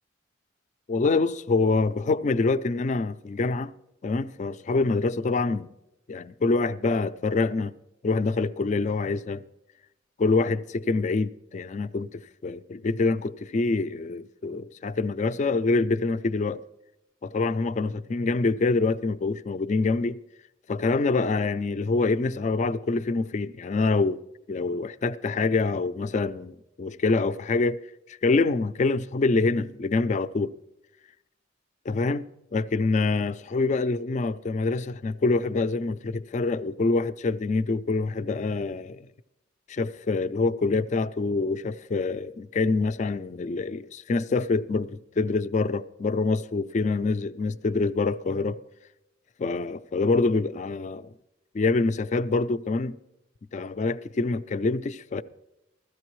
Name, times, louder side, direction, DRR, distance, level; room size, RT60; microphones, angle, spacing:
voice 1, 0.9-3.7 4.0-5.7 6.1-7.7 8.0-9.4 10.2-16.6 17.2-20.2 20.7-24.2 24.5-27.8 28.2-30.5 31.9-32.3 32.5-39.1 39.7-48.6 49.4-51.1 51.5-53.0 53.5-55.2, left 3 dB, 40° left, 0.3 m, -25 dB
15.5 x 13.5 x 3.1 m
head